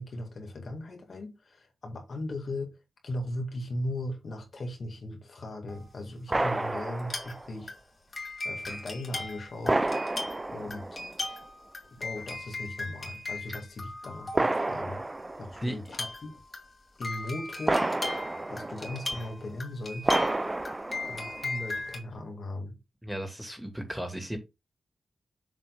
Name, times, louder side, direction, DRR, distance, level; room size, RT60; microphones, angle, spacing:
voice 1, 0.0-2.7 3.0-7.7 8.4-9.9 10.5-11.0 11.9-15.0 15.4-16.4 17.0-17.9 18.5-20.2 21.1-22.7, left 1 dB, 65° left, 2.3 m, -38 dB
sound 1, 5.7-5.9 7.0-7.4 7.7-14.9 15.9-22.0, left 2 dB, 45° left, 2.4 m, -38 dB
sound 2, 6.3-7.5 8.6-8.8 9.6-11.3 12.2-12.3 14.3-15.8 17.7-19.3 20.0-21.6, right 2 dB, 25° right, 0.4 m, -30 dB
voice 2, 23.0-24.4, equal, 5° right, 2.7 m, -35 dB
7.4 x 3.8 x 4.0 m
cardioid pair, 55°, 0 cm